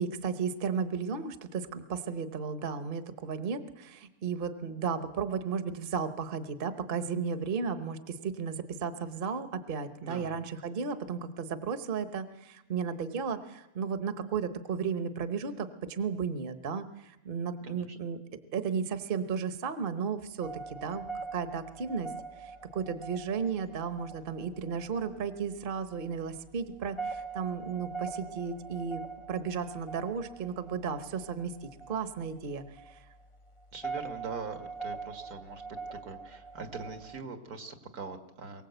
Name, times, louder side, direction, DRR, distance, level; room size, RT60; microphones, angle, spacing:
voice 1, 0.0-18.2 18.5-21.0 21.3-22.1 22.4-29.0 29.3-33.0, right 6 dB, 40° right, 10 dB, 1.1 m, -34 dB
voice 2, 10.0-10.4 17.6-18.0 33.7-35.6 35.9-38.7, right 4 dB, 75° right, 7 dB, 2.2 m, -42 dB
sound 1, 20.4-37.2, right 4 dB, 30° left, 0.7 m, -43 dB
23.0 x 17.0 x 8.0 m, 0.97 s
omnidirectional pair, 1.6 m